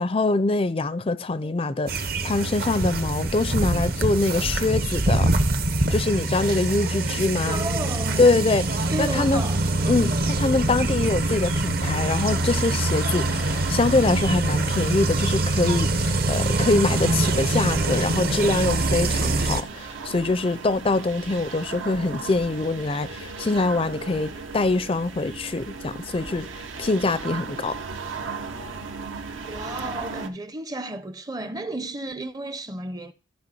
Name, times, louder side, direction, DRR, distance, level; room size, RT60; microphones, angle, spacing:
voice 1, 0.0-5.3 5.9-7.6 8.2-9.4 9.9-27.8, left 3 dB, 30° left, 0.4 m, -24 dB
sound 1, 1.9-19.6, right 2 dB, 50° right, 0.8 m, -24 dB
voice 2, 7.5-8.3 8.9-9.7 26.2-26.4 29.4-33.1, right 1 dB, 20° right, 0.5 m, -33 dB
sound 2, 11.2-30.3, right 4 dB, 80° right, 1.0 m, -37 dB
13.5 x 4.7 x 5.5 m
head